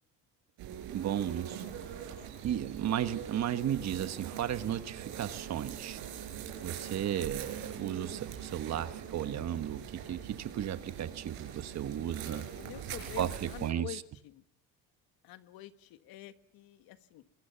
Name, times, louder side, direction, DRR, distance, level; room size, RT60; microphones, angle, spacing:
sound 1, 0.6-13.7, right 9 dB, 75° right, 6.0 m, -43 dB
voice 1, 0.9-1.6 2.4-6.0 6.6-12.5 13.2-14.0, right 10 dB, 45° right, 1.3 m, -34 dB
voice 2, 12.2-14.4 15.2-17.2, left 16 dB, 75° left, 1.6 m, -47 dB
23.5 x 22.5 x 5.8 m
cardioid pair, 125°, 36 cm